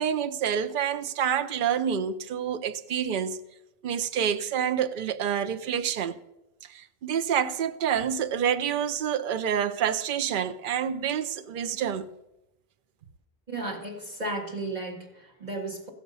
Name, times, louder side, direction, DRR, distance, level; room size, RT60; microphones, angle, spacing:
voice 1, 0.0-3.4 3.8-6.2 6.7-12.1, right 8 dB, 60° right, 0.7 m, -28 dB
voice 2, 13.5-15.9, right 2 dB, 45° right, 1.9 m, -34 dB
15.5 x 5.9 x 5.4 m
omnidirectional pair, 1.0 m